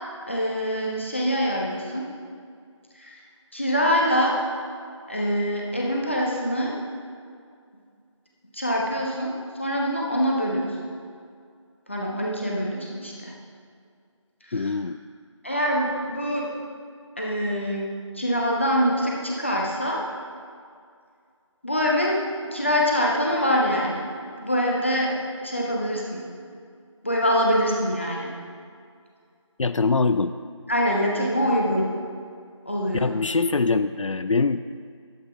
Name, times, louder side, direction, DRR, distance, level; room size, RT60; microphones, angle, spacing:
voice 1, 0.3-2.1 3.0-3.2 3.5-4.4 5.1-6.8 8.5-10.8 11.9-13.3 14.5-14.7 15.4-16.5 17.2-20.0 21.6-25.2 25.4-26.2 27.0-28.3 30.7-31.9 32.7-33.1, equal, 25° left, -3 dB, 0.9 m, -24 dB
voice 2, 14.5-15.0 29.6-30.3 33.0-34.6, left 4 dB, 80° left, 11 dB, 0.4 m, -23 dB
11.5 x 8.0 x 3.5 m, 2.2 s
figure-of-eight pair, 175°, 16 cm